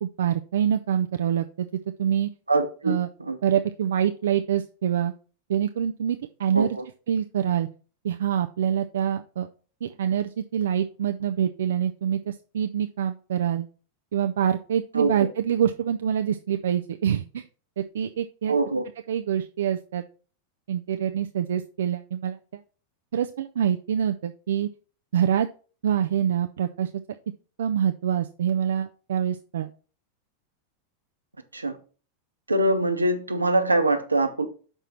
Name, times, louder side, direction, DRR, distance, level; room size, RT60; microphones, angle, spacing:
voice 1, 0.0-1.7 2.0-2.3 2.8-3.1 3.4-5.1 5.5-6.8 7.1-7.7 8.0-9.5 9.8-13.7 14.1-17.5 17.8-18.5 19.1-20.0 20.7-22.6 23.1-24.7 25.1-25.5 25.8-26.9 27.6-29.7, right 9 dB, 60° right, 0.4 m, -25 dB
voice 2, 2.5-3.4 6.5-6.7 14.9-15.1 18.5-18.8 31.5-31.8 32.5-34.5, right 2 dB, 80° right, 0.9 m, -23 dB
6.1 x 4.4 x 5.6 m
figure-of-eight pair, 90°, 0 cm